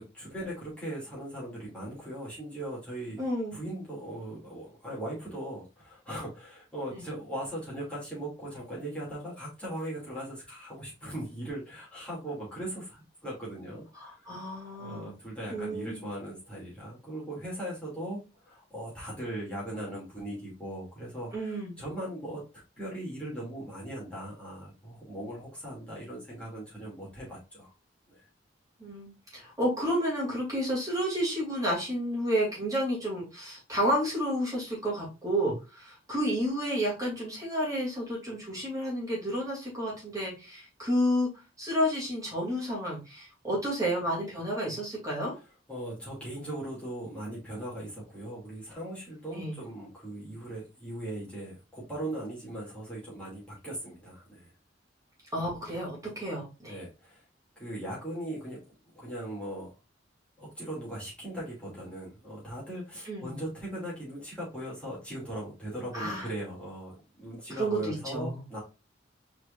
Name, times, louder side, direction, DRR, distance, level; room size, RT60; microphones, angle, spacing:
voice 1, 0.0-3.2 3.5-14.3 14.8-22.4 22.8-27.7 28.1-28.2 45.7-54.5 56.7-57.2 57.6-58.6 58.9-59.7 60.4-68.6, right 1 dB, 5° left, -7 dB, 2.5 m, -39 dB
voice 2, 3.2-3.6 6.9-7.0 14.0-15.1 15.5-16.0 21.3-21.8 28.8-41.3 41.6-45.3 49.3-49.6 55.3-56.8 63.0-63.3 65.9-66.3 67.5-68.4, equal, 20° right, -5 dB, 2.6 m, -31 dB
4.7 x 4.5 x 2.5 m, 0.30 s
head